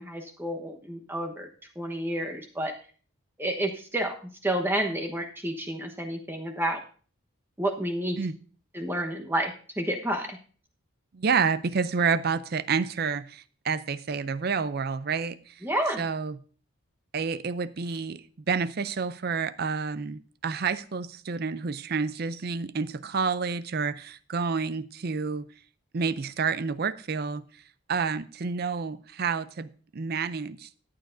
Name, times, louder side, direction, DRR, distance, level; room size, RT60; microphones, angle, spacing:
voice 1, 0.0-1.5 1.8-2.7 3.4-4.2 4.4-6.8 7.6-8.2 8.7-10.4 15.6-16.0, right 1 dB, 10° right, 1.1 m, -30 dB
voice 2, 11.1-15.4 16.0-16.4 17.1-18.2 18.5-25.4 25.9-27.4 27.9-30.8, right 5 dB, 50° right, 0.5 m, -29 dB
14.0 x 8.9 x 2.6 m
head